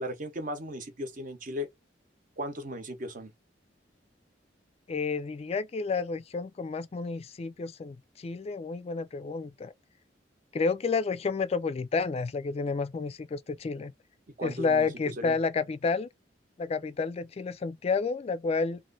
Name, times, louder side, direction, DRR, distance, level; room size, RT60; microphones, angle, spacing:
voice 1, 0.0-1.7 2.4-3.3 14.4-15.4, equal, 50° right, 1.0 m, -36 dB
voice 2, 4.9-9.7 10.5-13.9 14.4-16.1 16.6-18.8, left 4 dB, 35° left, 0.3 m, -30 dB
3.1 x 2.5 x 3.8 m
head